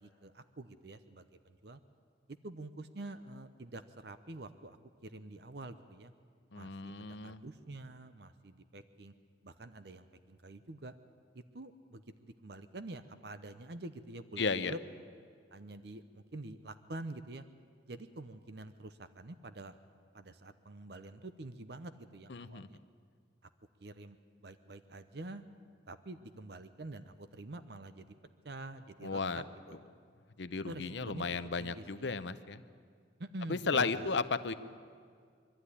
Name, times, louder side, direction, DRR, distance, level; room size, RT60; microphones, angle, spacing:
voice 1, 0.0-1.8 2.3-4.8 5.0-6.1 6.5-9.1 9.4-10.9 11.3-14.8 15.5-17.4 17.9-19.8 20.1-22.8 23.4-23.5 23.8-25.4 25.9-28.1 28.4-29.8 30.6-31.2 31.6-32.1 33.2-34.1, right 2 dB, 60° right, 11 dB, 0.8 m, -47 dB
voice 2, 6.5-7.4 14.4-14.7 22.3-22.7 29.0-29.4 30.4-32.6 33.5-34.5, left 4 dB, 70° left, 12 dB, 0.8 m, -34 dB
24.0 x 12.5 x 9.8 m, 2.1 s
head